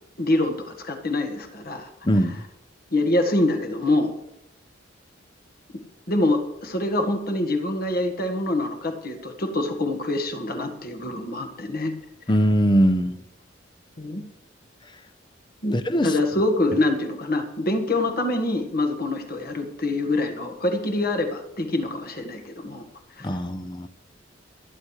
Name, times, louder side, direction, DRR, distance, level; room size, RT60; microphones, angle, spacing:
voice 1, 0.2-1.9 2.9-4.1 6.1-11.9 14.0-14.2 15.6-15.8 16.0-22.8 23.2-23.3, left 2 dB, 50° left, 6 dB, 1.7 m, -25 dB
voice 2, 2.0-2.4 12.3-13.2 15.7-16.1 23.2-23.9, equal, 25° left, 11 dB, 0.7 m, -21 dB
26.5 x 9.9 x 3.3 m, 0.82 s
head